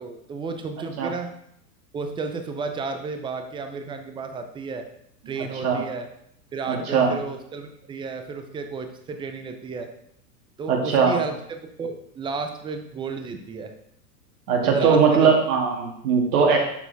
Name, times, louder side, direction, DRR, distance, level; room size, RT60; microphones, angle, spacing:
voice 1, 0.0-1.3 1.9-4.8 5.3-6.1 6.5-9.9 10.6-11.4 11.8-13.7 14.6-15.3 16.3-16.5, right 4 dB, 10° right, 7 dB, 0.5 m, -32 dB
voice 2, 5.3-5.8 6.7-7.1 10.7-11.2 14.5-16.6, right 6 dB, 65° right, 0 dB, 2.4 m, -20 dB
11.5 x 4.4 x 3.4 m, 0.74 s
hypercardioid pair, 120°, 50 cm